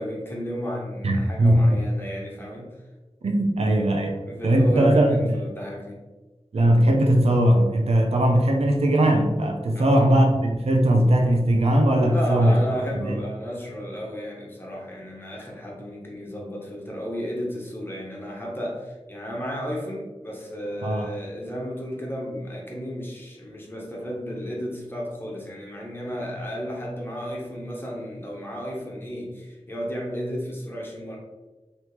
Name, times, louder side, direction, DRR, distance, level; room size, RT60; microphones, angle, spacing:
voice 1, 0.0-2.7 4.3-6.0 9.7-10.1 12.0-31.2, equal, 20° left, -2 dB, 1.2 m, -33 dB
voice 2, 1.0-1.8 3.2-5.4 6.5-12.6 13.0-13.2 20.8-21.1, right 1 dB, 65° right, 2 dB, 0.5 m, -19 dB
4.3 x 3.0 x 3.4 m, 1.2 s
wide cardioid pair, 70°, 11 cm